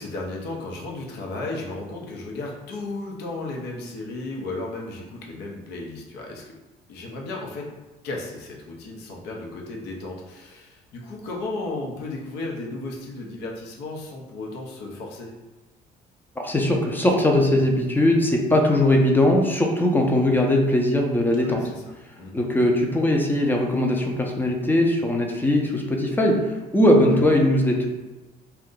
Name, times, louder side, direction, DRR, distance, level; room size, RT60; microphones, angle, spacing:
voice 1, 0.0-6.5 6.9-7.7 8.0-15.3 21.4-21.6 22.2-22.3 27.0-27.2, left 2 dB, 80° left, -1 dB, 0.7 m, -34 dB
voice 2, 16.4-21.6 22.3-26.4 26.7-27.9, left 1 dB, 10° left, 1 dB, 0.5 m, -20 dB
2.6 x 2.2 x 3.7 m, 1.1 s
cardioid pair, 110°, 17 cm